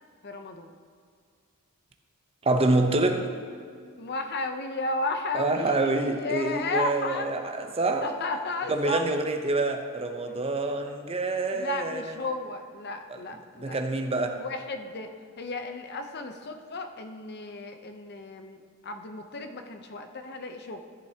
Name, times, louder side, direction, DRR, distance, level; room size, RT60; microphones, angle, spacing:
voice 1, 0.2-0.7 4.0-7.3 8.0-9.1 10.8-10.9 11.5-13.8 14.4-15.1 15.4-20.8, left 2 dB, 45° left, 6 dB, 0.7 m, -34 dB
voice 2, 2.4-3.3 5.3-8.1 8.7-12.2 13.1-13.2 13.6-14.4, right 2 dB, 25° right, 5 dB, 0.7 m, -26 dB
14.5 x 7.6 x 2.9 m, 2.2 s
head